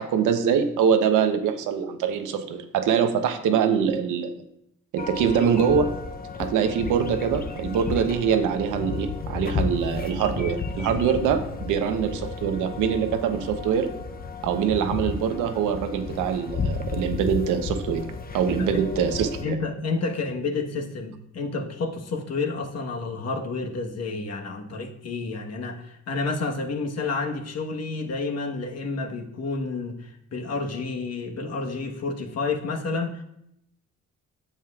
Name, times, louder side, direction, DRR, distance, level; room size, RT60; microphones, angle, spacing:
voice 1, 0.0-4.3 4.9-5.9 6.4-13.9 14.4-18.1 18.3-19.3, right 7 dB, 90° right, 7 dB, 0.8 m, -24 dB
sound 1, 5.0-19.4, left 5 dB, 30° left, 0.6 m, -33 dB
voice 2, 19.4-33.2, left 3 dB, 55° left, 2 dB, 1.2 m, -30 dB
8.9 x 7.3 x 2.4 m, 0.80 s
cardioid pair, 90°, 30 cm